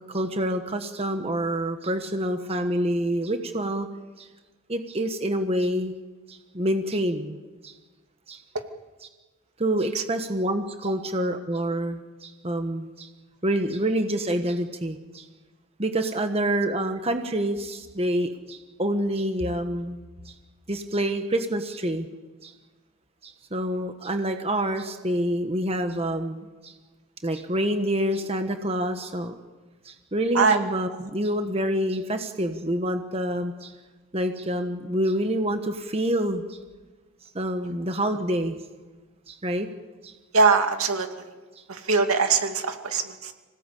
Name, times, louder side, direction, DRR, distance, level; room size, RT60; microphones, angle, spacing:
voice 1, 0.1-3.9 4.2-4.3 4.7-5.9 6.3-7.4 7.6-7.7 8.3-8.4 9.6-13.1 13.4-15.2 15.8-20.0 20.2-20.3 20.7-22.1 22.4-22.5 23.2-26.7 27.2-29.3 29.8-33.7 34.1-36.6 37.3-38.6 39.3-39.7 40.0-40.1, right 1 dB, 30° right, 6 dB, 1.3 m, -27 dB
voice 2, 40.3-41.1 41.7-43.3, right 4 dB, 80° right, 5 dB, 2.5 m, -22 dB
26.5 x 18.0 x 8.4 m, 1.3 s
head